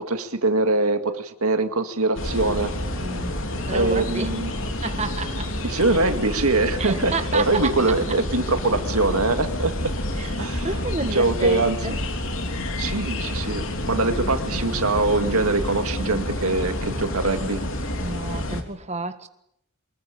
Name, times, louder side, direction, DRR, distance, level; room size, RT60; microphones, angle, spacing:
voice 1, 0.0-2.7 3.7-4.5 5.6-9.9 10.4-10.7 11.1-11.8 12.8-17.6, right 2 dB, 85° right, 2.1 m, -23 dB
sound 1, 2.2-18.6, left 1 dB, 70° left, 3.3 m, -29 dB
voice 2, 3.0-4.3 4.8-5.5 6.8-7.7 10.2-12.0 18.0-19.3, right 3 dB, 30° right, 1.6 m, -31 dB
24.0 x 21.0 x 8.8 m
head